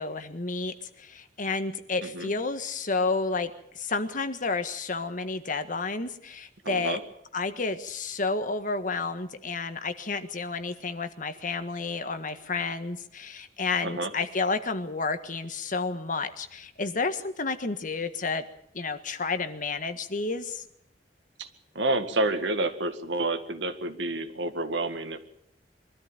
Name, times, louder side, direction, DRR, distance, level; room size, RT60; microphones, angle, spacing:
voice 1, 0.0-7.0 7.3-18.4 18.7-20.6, left 3 dB, 50° left, 9 dB, 1.6 m, -31 dB
voice 2, 6.7-7.0 13.8-14.1 21.4-21.5 21.8-25.2, right 2 dB, 85° right, 9 dB, 2.0 m, -29 dB
23.5 x 13.5 x 9.0 m, 0.73 s
head